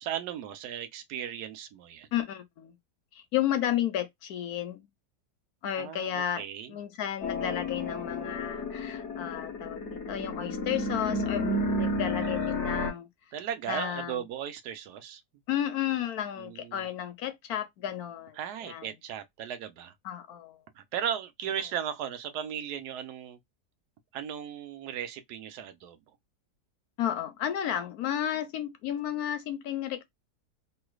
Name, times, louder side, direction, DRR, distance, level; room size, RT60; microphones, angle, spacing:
voice 1, 0.0-2.1 5.8-6.8 12.5-12.6 13.3-15.2 16.4-16.9 18.4-19.9 20.8-23.4 24.1-26.0, right 9 dB, 75° right, 1.2 m, -36 dB
voice 2, 2.1-2.8 3.1-4.9 5.6-6.4 6.7-13.1 13.7-14.2 15.5-18.9 20.0-20.6 27.0-30.0, left 10 dB, 65° left, 1.2 m, -32 dB
sound 1, 7.2-12.9, left 2 dB, 45° left, 1.2 m, -31 dB
3.1 x 3.0 x 2.3 m
omnidirectional pair, 1.8 m